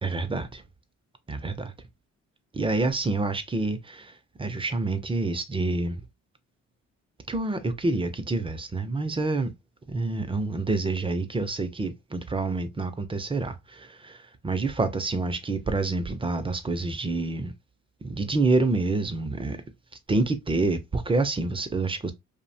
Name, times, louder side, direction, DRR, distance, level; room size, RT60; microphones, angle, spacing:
voice 1, 0.0-0.6 1.3-1.7 2.5-4.1 4.4-6.0 7.3-9.5 9.9-17.5 18.0-19.6 20.1-22.1, right 3 dB, 20° right, 0.4 m, -27 dB
2.5 x 2.1 x 2.6 m
cardioid pair, 90°, 30 cm